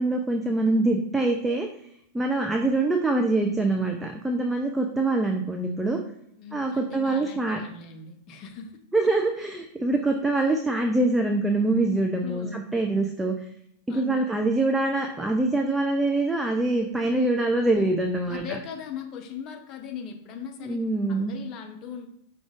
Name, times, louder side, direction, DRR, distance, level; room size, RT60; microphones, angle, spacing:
voice 1, 0.0-1.7 2.1-6.0 6.5-7.6 8.9-13.3 13.9-18.4 20.6-21.3, right 2 dB, 10° right, 2 dB, 0.4 m, -24 dB
voice 2, 6.4-9.1 12.2-12.6 13.9-14.3 18.3-20.8 21.1-22.1, left 7 dB, 35° left, 4 dB, 0.7 m, -39 dB
4.9 x 2.4 x 3.6 m, 0.75 s
figure-of-eight pair, 90°, 0 cm